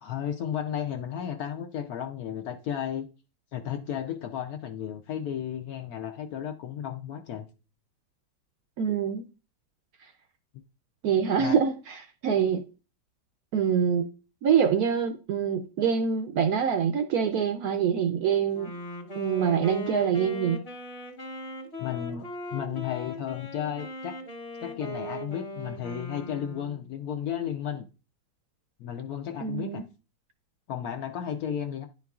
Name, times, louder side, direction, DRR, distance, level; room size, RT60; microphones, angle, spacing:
voice 1, 0.0-3.1 3.5-7.5 11.4-11.5 21.8-24.2 24.6-27.9 28.8-29.8 30.7-31.9, left 9 dB, 70° left, 0.9 m, -33 dB
voice 2, 8.8-9.2 11.0-12.6 13.5-14.1 14.4-18.7 19.1-20.6 29.4-29.8, right 7 dB, 70° right, 0.9 m, -25 dB
Wind instrument woodwind instrument, 18.5-26.9, left 1 dB, 40° left, 1.3 m, -39 dB
10.5 x 4.5 x 2.3 m
omnidirectional pair, 2.0 m